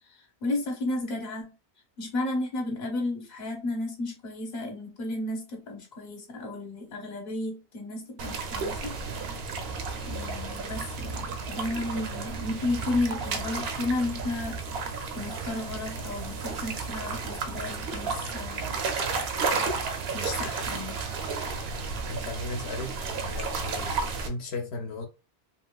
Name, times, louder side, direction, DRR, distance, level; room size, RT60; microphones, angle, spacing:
voice 1, 0.1-1.5 2.0-8.9 10.0-18.6 20.1-21.0, left 2 dB, 45° left, 1.0 m, -33 dB
sound 1, 8.2-24.3, right 4 dB, 70° right, 0.8 m, -32 dB
voice 2, 22.1-23.0 23.2-25.1, left 2 dB, 80° left, 0.8 m, -36 dB
2.9 x 2.8 x 2.2 m
omnidirectional pair, 1.1 m